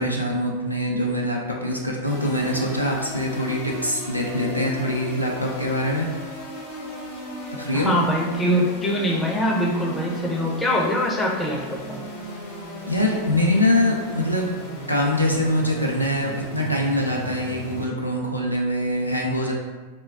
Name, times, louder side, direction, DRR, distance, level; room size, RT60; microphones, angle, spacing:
voice 1, 0.0-6.1 7.6-7.9 12.9-14.5 14.9-19.5, left 1 dB, 90° left, -1 dB, 0.4 m, -23 dB
sound 1, 2.0-17.9, equal, 50° left, 0.8 m, -36 dB
voice 2, 7.7-12.0, equal, 10° left, -1 dB, 0.5 m, -23 dB
2.2 x 2.2 x 3.3 m, 1.3 s
figure-of-eight pair, 90°, 0 cm